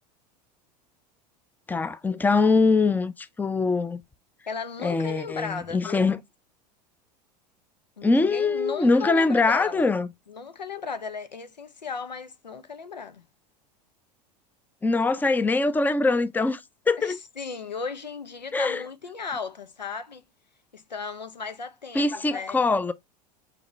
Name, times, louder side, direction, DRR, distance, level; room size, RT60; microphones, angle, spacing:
voice 1, 1.7-4.0 4.8-6.2 8.0-10.1 14.8-16.6 16.9-17.2 18.5-18.8 21.9-22.9, left 3 dB, 10° left, 0.6 m, -23 dB
voice 2, 4.5-6.1 8.0-9.9 10.3-13.2 17.0-20.2 20.7-22.6, left 5 dB, 85° left, 0.7 m, -36 dB
7.1 x 4.4 x 3.1 m
figure-of-eight pair, 80°, 21 cm